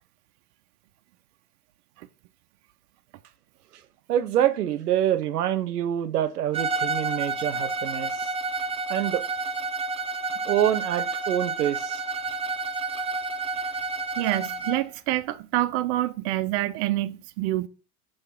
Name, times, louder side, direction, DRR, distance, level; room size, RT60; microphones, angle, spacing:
voice 1, 4.1-8.1 8.9-9.2 10.4-12.0, right 11 dB, 75° right, 0.8 m, -25 dB
Bowed string instrument, 6.5-14.9, right 3 dB, 10° right, 0.7 m, -30 dB
voice 2, 14.2-17.7, right 15 dB, 45° right, 0.5 m, -27 dB
6.4 x 3.2 x 5.6 m
hypercardioid pair, 95°, 46 cm